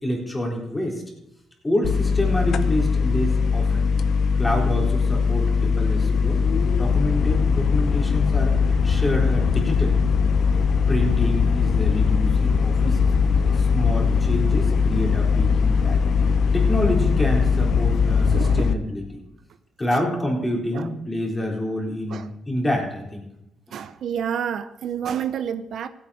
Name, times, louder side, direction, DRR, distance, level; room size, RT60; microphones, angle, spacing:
voice 1, 0.0-1.0 1.6-3.9 4.4-6.4 6.8-10.0 10.9-13.0 13.5-16.0 16.5-19.2 19.8-23.3 23.7-23.8, left 1 dB, 15° left, -1 dB, 3.9 m, -27 dB
sound 1, 1.8-18.7, left 5 dB, 65° left, 0.7 m, -20 dB
voice 2, 18.3-18.7 19.9-20.0 20.7-20.9 22.1-22.3 23.7-25.9, right 8 dB, 65° right, 11 dB, 0.6 m, -29 dB
16.0 x 8.7 x 4.9 m, 0.84 s
cardioid pair, 90°, 0 cm